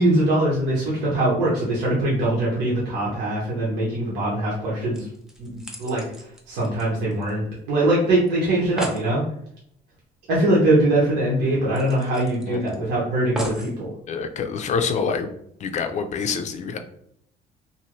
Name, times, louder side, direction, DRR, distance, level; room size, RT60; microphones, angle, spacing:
voice 1, 0.0-5.1 5.4-6.0 6.5-9.2 10.3-13.9, right 1 dB, 85° right, -6 dB, 1.0 m, -22 dB
sound 1, 4.9-7.6 7.9-8.0 8.3-8.4 8.6-9.1 10.6-10.7 11.0-11.1 11.7-12.8 13.4-13.8 14.5-14.6, equal, 5° right, 0.6 m, -35 dB
voice 2, 14.1-15.3 15.6-16.8, left 5 dB, 45° left, 8 dB, 0.4 m, -26 dB
2.7 x 2.5 x 3.0 m, 0.70 s
cardioid pair, 110°, 17 cm